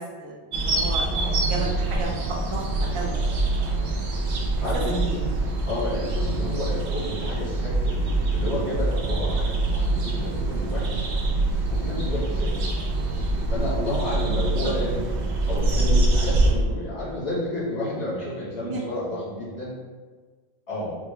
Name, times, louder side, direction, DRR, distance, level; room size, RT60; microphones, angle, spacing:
voice 1, 0.0-2.1 2.5-3.2 3.7-3.8 5.1-5.2 9.8-10.1 14.6-14.7 18.6-18.8, right 2 dB, 50° right, -3 dB, 0.3 m, -34 dB
sound 1, 0.5-16.5, right 2 dB, 85° right, 0.9 m, -25 dB
voice 2, 1.1-1.5 4.6-5.2 5.7-11.1 11.7-12.7 13.5-15.1 15.5-19.7 20.7-20.9, left 1 dB, 65° left, -9 dB, 1.8 m, -31 dB
4.6 x 2.1 x 3.2 m, 1.5 s
omnidirectional pair, 1.1 m